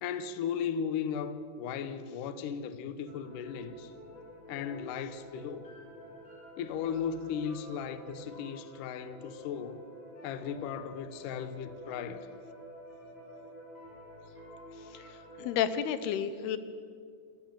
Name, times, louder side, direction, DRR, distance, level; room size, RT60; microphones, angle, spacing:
voice 1, 0.0-3.9 4.5-5.6 6.6-9.8 10.2-12.3, left 7 dB, 70° left, 2.3 m, -36 dB
sound 1, 3.1-15.7, equal, 30° left, 7.4 m, -49 dB
voice 2, 14.9-16.6, left 9 dB, 90° left, 3.0 m, -32 dB
28.5 x 16.0 x 7.6 m
omnidirectional pair, 4.4 m